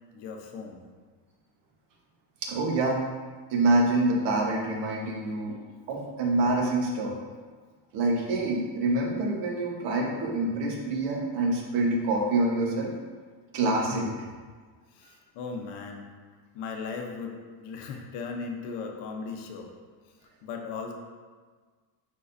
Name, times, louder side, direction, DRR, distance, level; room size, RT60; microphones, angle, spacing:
voice 1, 0.1-0.8 13.9-14.2 14.9-16.1 16.5-19.7 20.4-20.9, left 5 dB, 60° left, 2 dB, 1.0 m, -37 dB
voice 2, 2.4-3.0 3.5-5.5 5.9-7.1 7.9-12.9 13.5-14.1, right 2 dB, 60° right, 0 dB, 1.4 m, -26 dB
10.0 x 3.8 x 2.7 m, 1.5 s
cardioid pair, 150°, 48 cm